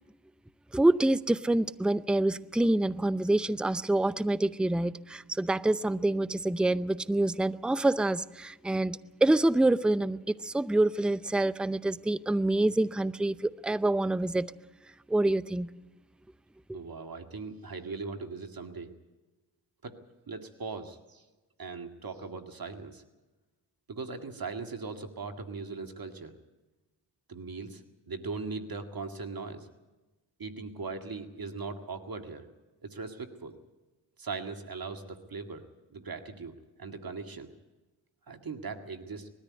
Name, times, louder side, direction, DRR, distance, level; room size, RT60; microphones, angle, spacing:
voice 1, 0.7-14.5 15.1-15.7 16.7-16.8, right 2 dB, ahead, 0.6 m, -26 dB
voice 2, 16.7-18.9 19.8-20.0 20.3-21.2 21.6-23.0 23.9-26.3 27.3-27.8 28.1-29.7 30.4-32.5 32.8-33.6 34.2-35.6 35.9-37.5 38.3-39.3, right 4 dB, 50° right, 2.0 m, -39 dB
20.5 x 13.5 x 9.6 m
supercardioid pair, 45°, 47 cm